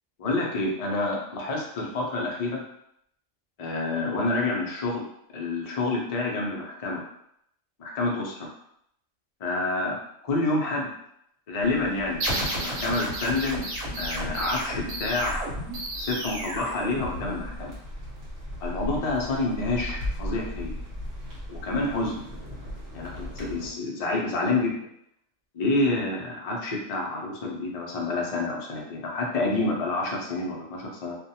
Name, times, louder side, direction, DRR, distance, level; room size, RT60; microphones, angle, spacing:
voice 1, 0.2-2.6 3.6-5.0 5.3-7.0 7.8-8.5 9.4-10.9 11.5-12.2 12.5-13.6 14.0-15.3 16.0-17.7 18.6-20.7 21.5-22.2 22.9-24.8 25.5-31.2, left 2 dB, 75° left, -2 dB, 0.3 m, -28 dB
sound 1, 11.6-23.7, left 1 dB, 55° right, 1.0 m, -38 dB
sound 2, 12.2-17.6, right 1 dB, 75° right, 1.1 m, -32 dB
2.4 x 2.1 x 2.7 m, 0.74 s
omnidirectional pair, 1.4 m